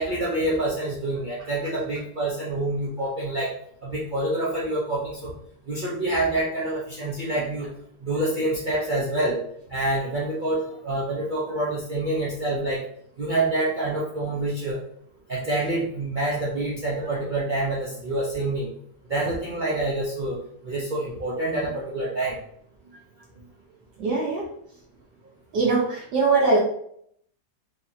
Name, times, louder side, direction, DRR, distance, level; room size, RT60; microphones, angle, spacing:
voice 1, 0.0-3.5 3.8-5.3 5.7-7.7 8.0-9.4 9.7-12.9 13.2-14.8 15.3-18.7 19.1-20.4 20.6-22.4, right 1 dB, 85° right, -6 dB, 0.4 m, -27 dB
voice 2, 24.0-24.4 25.5-26.6, right 3 dB, 70° right, -4 dB, 1.6 m, -21 dB
4.7 x 2.8 x 2.7 m, 0.66 s
omnidirectional pair, 1.9 m